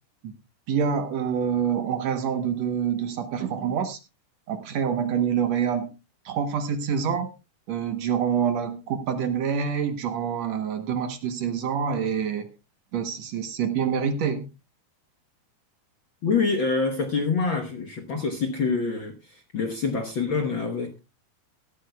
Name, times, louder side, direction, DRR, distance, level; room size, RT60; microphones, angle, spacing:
voice 1, 0.7-4.0 4.5-5.9 6.3-7.3 7.7-12.5 12.9-14.5, right 7 dB, 65° right, 2.1 m, -26 dB
voice 2, 16.2-21.0, left 4 dB, 55° left, 1.4 m, -26 dB
17.5 x 13.5 x 2.3 m
omnidirectional pair, 3.7 m